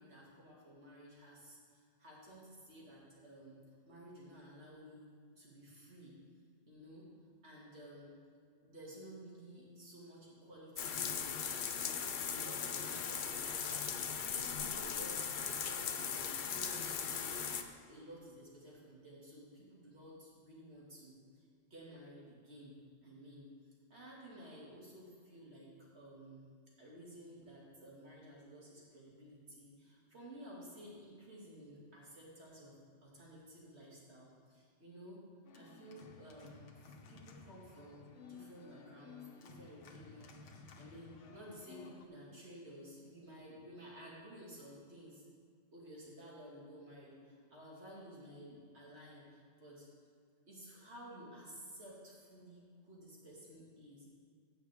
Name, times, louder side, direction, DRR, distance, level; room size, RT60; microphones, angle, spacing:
voice 1, 0.0-3.6 3.9-6.1 6.7-7.1 7.4-8.2 8.6-17.4 17.8-21.5 21.7-22.7 23.0-23.5 23.9-26.5 26.8-32.7 33.0-35.2 35.5-36.7 37.1-45.2 45.7-49.9 50.5-54.1, equal, 65° right, -5 dB, 2.4 m, -54 dB
sound 1, 10.8-17.6, left 7 dB, 55° left, 0.6 m, -38 dB
Organ, 35.4-42.1, left 5 dB, 85° left, 1.1 m, -55 dB
16.0 x 5.9 x 3.5 m, 2.1 s
omnidirectional pair, 1.2 m